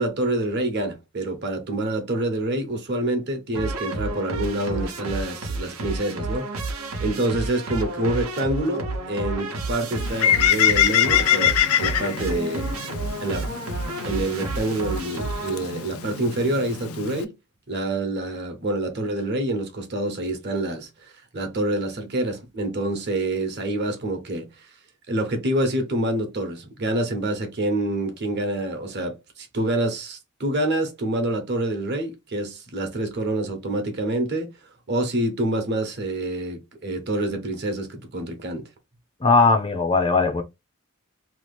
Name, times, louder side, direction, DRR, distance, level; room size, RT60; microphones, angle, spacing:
voice 1, 0.0-6.5 6.7-12.7 13.2-13.6 14.0-17.3 17.7-20.9 21.3-24.5 25.1-34.5 34.9-38.6, right 1 dB, 50° right, 0.9 m, -27 dB
sound 1, 3.5-15.9, right 2 dB, 80° right, 0.8 m, -31 dB
Bird, 9.9-17.2, left 10 dB, 80° left, 0.4 m, -24 dB
voice 2, 39.2-40.4, left 4 dB, 25° left, 0.5 m, -19 dB
2.9 x 2.4 x 3.3 m
head